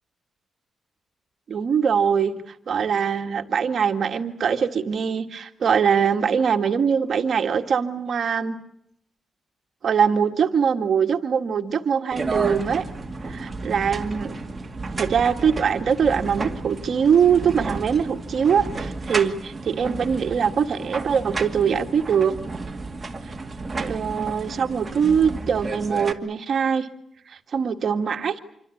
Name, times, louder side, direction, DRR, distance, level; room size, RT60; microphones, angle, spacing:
voice 1, 1.5-2.3 2.7-8.5 9.8-12.8 13.3-14.4 15.0-22.3 23.2-23.3 23.8-26.9 27.3-28.4, right 7 dB, 55° right, 6 dB, 1.8 m, -22 dB
sound 1, 12.1-26.1, right 3 dB, 20° right, 2.3 m, -32 dB
27.0 x 24.0 x 8.6 m, 0.72 s
wide cardioid pair, 170°, 0 cm